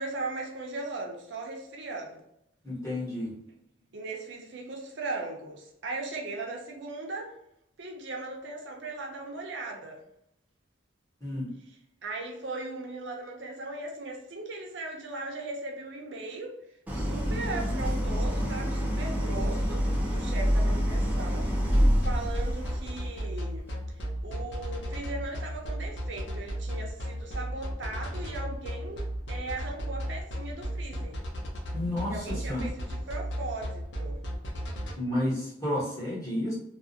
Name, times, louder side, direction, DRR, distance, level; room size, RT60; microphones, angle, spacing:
voice 1, 0.0-2.2 3.9-7.4 7.8-10.0 12.0-16.6 16.9-23.7 24.2-31.2 32.1-34.2, right 2 dB, 65° right, 1 dB, 0.6 m, -38 dB
voice 2, 2.6-3.3 11.2-11.5 31.7-32.6 35.0-36.5, left 1 dB, 15° left, -8 dB, 1.0 m, -31 dB
Idling, 16.9-22.9, equal, 10° right, 0.3 m, -27 dB
sound 1, 21.7-34.9, equal, 60° left, 0.5 m, -34 dB
2.4 x 2.0 x 2.6 m, 0.76 s
head